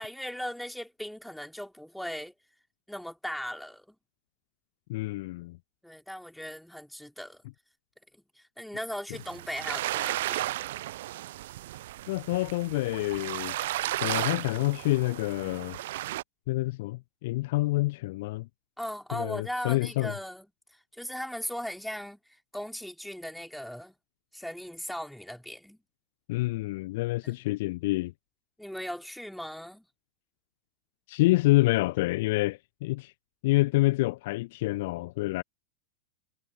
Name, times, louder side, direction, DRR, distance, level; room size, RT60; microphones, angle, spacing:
voice 1, 0.0-2.3 2.9-3.9 5.8-7.4 8.1-10.5 18.8-20.5 20.9-22.2 22.5-24.0 24.3-25.8 27.2-27.4 28.6-29.9, equal, ahead, 4.9 m, -38 dB
voice 2, 4.9-5.6 12.1-13.6 14.0-15.8 16.5-18.5 19.1-20.1 26.3-28.1 31.1-33.1 33.4-35.4, left 20 dB, 50° left, 0.8 m, -27 dB
sound 1, 9.1-16.2, right 15 dB, 55° right, 0.4 m, -34 dB
figure-of-eight pair, 90°, 0 cm